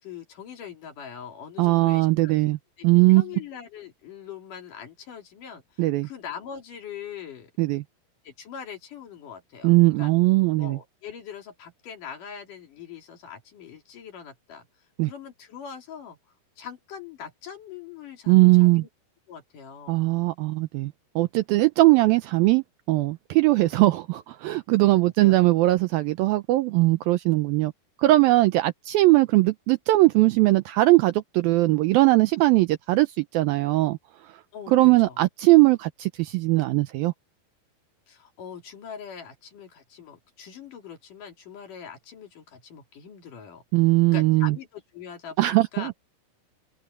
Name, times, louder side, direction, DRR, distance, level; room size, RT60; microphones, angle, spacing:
voice 1, 0.0-7.5 8.2-10.1 10.6-14.7 15.0-16.2 16.6-18.9 19.3-20.3 25.0-25.4 34.5-34.7 35.1-35.2 38.1-43.6 44.1-45.9, left 7 dB, 55° left, 4.0 m, -42 dB
voice 2, 1.6-2.6 2.8-3.2 5.8-6.1 7.6-7.8 9.6-10.8 15.0-15.1 18.3-18.8 19.9-27.7 28.0-34.0 34.7-37.1 43.7-44.6 45.4-46.0, right 19 dB, 80° right, 2.2 m, -20 dB
open air
omnidirectional pair, 4.7 m